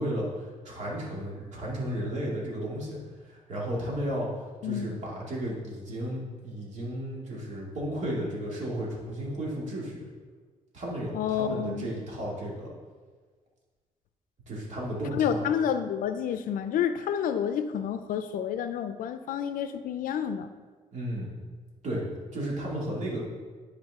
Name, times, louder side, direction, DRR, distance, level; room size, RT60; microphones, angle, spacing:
voice 1, 0.0-3.0 3.2-4.3 4.6-10.0 10.7-12.7 14.5-15.4 20.9-21.3 21.8-22.0 22.3-23.2, right 1 dB, 55° right, -4 dB, 2.4 m, -33 dB
voice 2, 4.6-5.0 11.1-11.9 15.1-20.5, left 8 dB, 80° left, 10 dB, 0.5 m, -29 dB
10.5 x 4.7 x 3.6 m, 1.5 s
cardioid pair, 125°, 14 cm